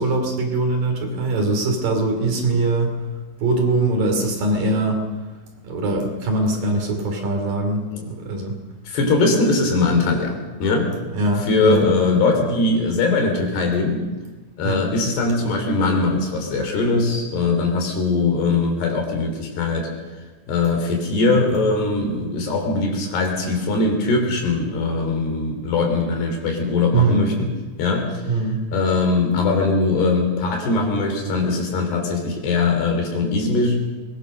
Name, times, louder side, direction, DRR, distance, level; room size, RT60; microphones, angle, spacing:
voice 1, 0.0-3.0 3.4-5.0 5.6-8.6 11.1-11.9 14.6-14.8 26.9-27.3 28.3-28.6, right 2 dB, 55° right, 3 dB, 4.4 m, -22 dB
voice 2, 8.8-10.9 11.4-14.0 14.6-19.9 20.5-27.5 27.8-28.2 28.7-33.8, left 3 dB, 70° left, 4 dB, 5.3 m, -21 dB
22.5 x 20.5 x 6.6 m, 1.2 s
omnidirectional pair, 4.9 m